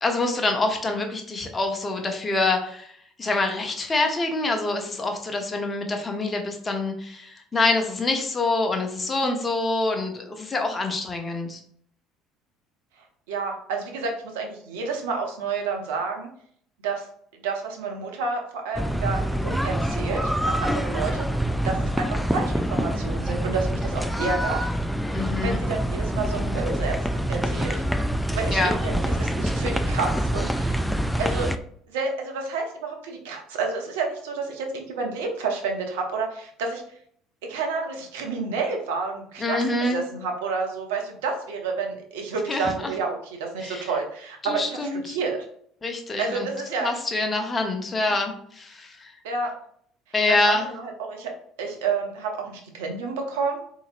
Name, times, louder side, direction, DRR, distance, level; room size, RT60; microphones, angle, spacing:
voice 1, 0.0-2.9 3.2-11.6 25.1-25.6 28.5-28.8 39.4-40.0 42.5-42.9 43.6-43.9 44.4-45.2 45.8-46.5 46.8-49.2 50.1-50.7, left 2 dB, 25° left, 3 dB, 0.8 m, -26 dB
voice 2, 13.3-16.3 16.8-17.1 17.3-21.3 21.6-24.7 25.4-27.8 28.3-30.8 31.2-31.5 31.9-36.8 37.4-45.5 46.2-46.9 49.2-49.5 50.3-51.3 51.6-53.6, right 4 dB, 75° right, 2 dB, 0.7 m, -30 dB
sound 1, 18.7-31.6, equal, ahead, 0.3 m, -26 dB
3.9 x 2.9 x 2.5 m, 0.63 s
hypercardioid pair, 60°, 0 cm